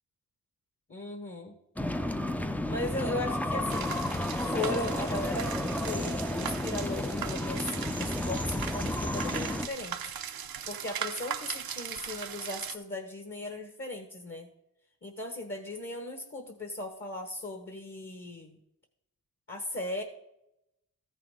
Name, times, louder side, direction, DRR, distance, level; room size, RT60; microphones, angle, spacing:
voice 1, 0.9-1.6 2.7-4.2 4.5-5.6 5.8-10.1 10.7-14.5 15.0-18.6 19.5-20.0, left 2 dB, 35° left, 4 dB, 1.3 m, -37 dB
sound 1, 1.8-9.7, left 1 dB, 5° left, 0.5 m, -32 dB
sound 2, 3.7-12.7, right 9 dB, 80° right, 0.7 m, -39 dB
14.0 x 5.9 x 3.6 m, 0.82 s
cardioid pair, 75°, 35 cm